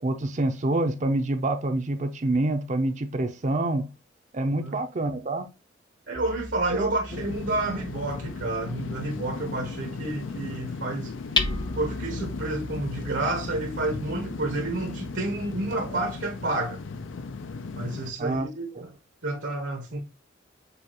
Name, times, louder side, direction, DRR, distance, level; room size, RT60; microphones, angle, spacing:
voice 1, 0.0-3.9 4.3-5.5 6.7-6.9 7.2-7.3 15.7-16.0 18.2-18.5, right 2 dB, 40° right, 0.5 m, -27 dB
voice 2, 4.4-4.8 6.1-11.1 11.7-16.8 17.7-18.9 19.2-20.0, right 2 dB, 75° right, 1.1 m, -30 dB
Hammer, 6.1-17.9, left 3 dB, 25° left, 0.4 m, -37 dB
sound 1, 7.1-18.1, left 4 dB, 85° left, 0.5 m, -36 dB
6.8 x 2.4 x 2.9 m
head